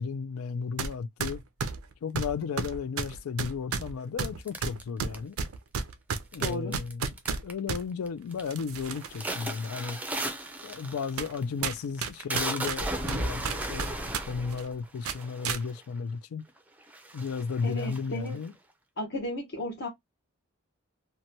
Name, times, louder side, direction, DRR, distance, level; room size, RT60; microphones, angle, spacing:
voice 1, 0.0-1.4 2.0-5.4 6.3-7.1 7.4-10.0 10.6-13.9 14.3-16.4 17.1-18.5, left 5 dB, 80° left, 0.4 m, -34 dB
sound 1, 0.8-0.9 1.2-7.8 8.5-9.2 9.6-9.7 10.5-10.6 11.2-11.4 11.6-14.2 14.5-14.7 15.0-15.6, right 5 dB, 75° right, 0.5 m, -32 dB
sound 2, 4.5-5.6 6.3-6.9 7.2-7.7 8.1-8.4 8.8-15.8 16.5-16.6 16.9-18.5, right 1 dB, 5° right, 0.4 m, -35 dB
voice 2, 6.4-6.8 17.6-18.4 19.0-19.9, left 1 dB, 50° left, 0.8 m, -34 dB
2.9 x 2.1 x 2.6 m
head